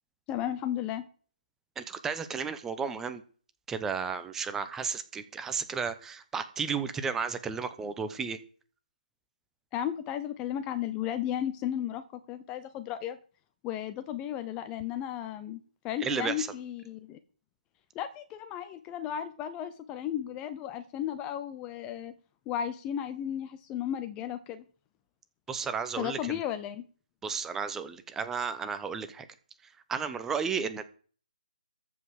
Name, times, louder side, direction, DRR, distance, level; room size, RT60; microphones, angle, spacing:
voice 1, 0.3-1.0 9.7-13.2 13.6-17.2 17.9-22.1 22.5-24.6 26.0-26.8, left 10 dB, 15° left, 11 dB, 0.7 m, -34 dB
voice 2, 1.8-3.2 3.7-8.4 16.0-16.5 25.5-26.4 27.2-29.3 29.9-30.8, right 6 dB, 10° right, 11 dB, 0.8 m, -33 dB
14.0 x 5.5 x 7.6 m, 0.43 s
figure-of-eight pair, 150°, 5 cm